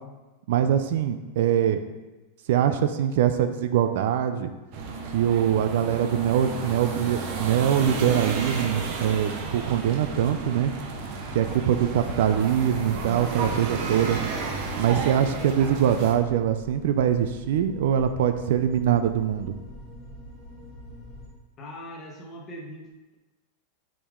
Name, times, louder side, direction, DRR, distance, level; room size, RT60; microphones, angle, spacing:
voice 1, 0.5-1.8 2.5-4.5 5.1-10.7 11.3-14.2 14.8-19.5, right 9 dB, 65° right, 9 dB, 0.5 m, -23 dB
sound 1, 4.7-16.1, right 4 dB, 45° right, 0.9 m, -33 dB
sound 2, 7.7-21.3, left 1 dB, 20° right, 2.0 m, -45 dB
voice 2, 21.6-22.9, equal, 20° left, -1 dB, 1.1 m, -40 dB
7.1 x 5.1 x 3.7 m, 1.1 s
supercardioid pair, 165°, 0 cm